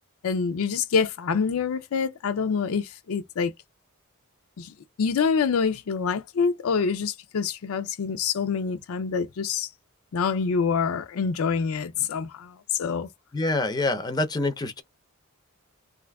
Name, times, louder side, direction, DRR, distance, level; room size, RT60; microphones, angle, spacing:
voice 1, 0.2-3.5 4.6-9.7 10.1-13.1, left 5 dB, 75° left, 0.4 m, -26 dB
voice 2, 13.3-14.8, left 2 dB, 20° left, 0.5 m, -26 dB
2.6 x 2.4 x 3.3 m
head